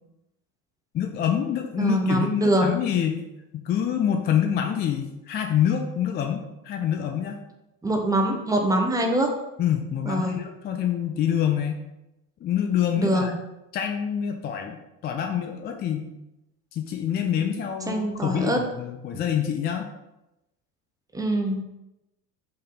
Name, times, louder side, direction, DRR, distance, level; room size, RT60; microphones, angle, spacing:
voice 1, 0.9-3.2 3.5-7.4 9.6-11.9 12.4-13.3 13.7-14.8 15.0-16.1 16.7-19.9, left 9 dB, 20° left, 5 dB, 0.4 m, -26 dB
voice 2, 1.8-2.7 7.8-9.3 10.0-10.4 13.0-13.3 17.9-18.6 21.1-21.6, right 1 dB, 5° right, 2 dB, 0.9 m, -23 dB
5.4 x 3.4 x 5.5 m, 0.93 s
figure-of-eight pair, 65°, 49 cm